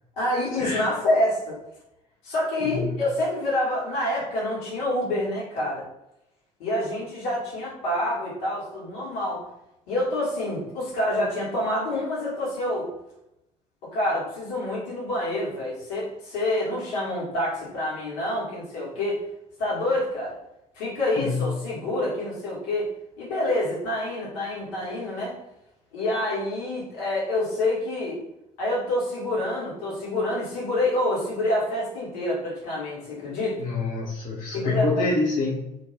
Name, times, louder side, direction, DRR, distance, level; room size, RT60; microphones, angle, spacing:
voice 1, 0.2-1.6 2.2-5.8 6.6-9.4 9.9-12.9 13.8-19.2 19.6-20.4 20.7-22.9 23.2-25.4 25.9-28.2 28.6-33.6 34.5-35.0, left 1 dB, 70° left, -5 dB, 1.0 m, -27 dB
voice 2, 2.6-3.0 21.2-21.5 33.6-35.8, left 3 dB, 40° left, -2 dB, 0.5 m, -26 dB
2.3 x 2.2 x 3.0 m, 0.86 s
figure-of-eight pair, 50°, 20 cm